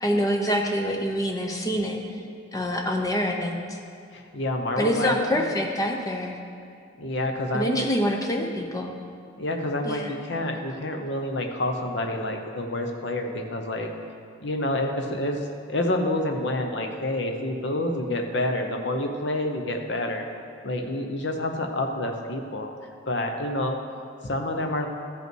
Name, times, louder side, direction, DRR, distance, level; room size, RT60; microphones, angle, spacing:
voice 1, 0.0-2.0 2.5-3.8 4.8-6.4 7.5-8.9 9.8-10.1, equal, 15° left, 2 dB, 0.7 m, -26 dB
voice 2, 4.1-5.4 7.0-7.9 9.4-13.9 14.4-20.3 20.6-22.7 23.1-23.8 24.2-24.9, left 1 dB, 55° left, 3 dB, 0.9 m, -28 dB
13.5 x 5.5 x 4.6 m, 2.4 s
head